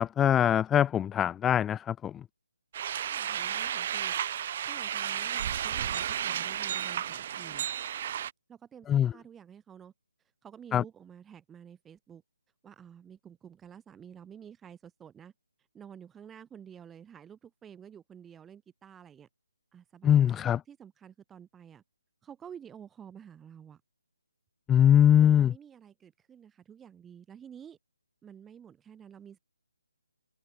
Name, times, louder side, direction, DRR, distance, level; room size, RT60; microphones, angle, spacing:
voice 1, 0.0-2.2 8.9-9.1 10.7-10.8 20.0-20.6 24.7-25.5, left 10 dB, 10° left, 1.2 m, -22 dB
sound 1, 2.7-8.3, right 10 dB, 40° right, 2.2 m, -33 dB
voice 2, 3.0-4.1 4.6-7.7 8.5-9.9 10.4-12.2 12.6-15.3 15.7-19.3 19.7-21.8 22.2-23.8 25.2-27.8 28.2-29.4, right 8 dB, 10° right, 6.8 m, -50 dB
figure-of-eight pair, 150°, 0 cm